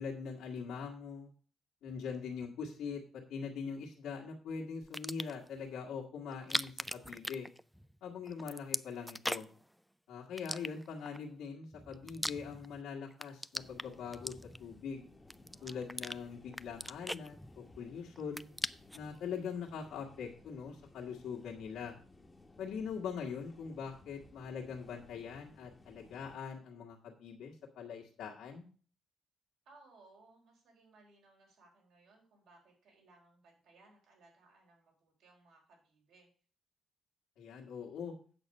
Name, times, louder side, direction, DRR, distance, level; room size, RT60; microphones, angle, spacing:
voice 1, 0.0-1.3 1.8-3.0 3.3-7.5 8.0-9.5 10.1-15.0 15.6-18.5 18.9-21.9 22.6-28.6 37.4-38.1, left 6 dB, 90° left, -4 dB, 1.7 m, -42 dB
sound 1, 4.8-5.5 6.3-8.0 8.3-9.6 10.4-11.2 11.7-12.8 13.1-14.8 15.3-16.2 16.5-17.9 18.2-19.1, equal, ahead, 0.3 m, -39 dB
sound 2, 13.6-26.4, left 2 dB, 20° left, 0.9 m, -60 dB
voice 2, 15.5-16.3 29.7-36.3, right 3 dB, 80° right, 0 dB, 4.1 m, -63 dB
8.4 x 6.6 x 5.4 m, 0.42 s
cardioid pair, 110°, 0 cm